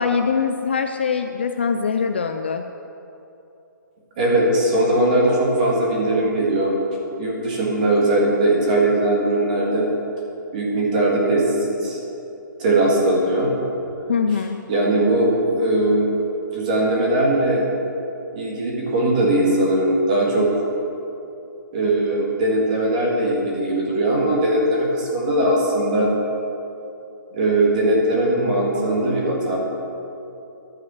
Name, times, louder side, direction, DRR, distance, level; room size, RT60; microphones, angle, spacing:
voice 1, 0.0-2.7 14.1-14.6, left 5 dB, 30° left, 6 dB, 0.3 m, -22 dB
voice 2, 4.2-6.7 7.2-9.9 10.5-12.0 12.6-13.5 14.7-16.1 16.5-17.7 18.3-20.5 21.7-26.1 27.3-29.6, right 1 dB, 25° right, -3 dB, 1.8 m, -20 dB
11.5 x 8.6 x 6.3 m, 2.9 s
hypercardioid pair, 180°, 11 cm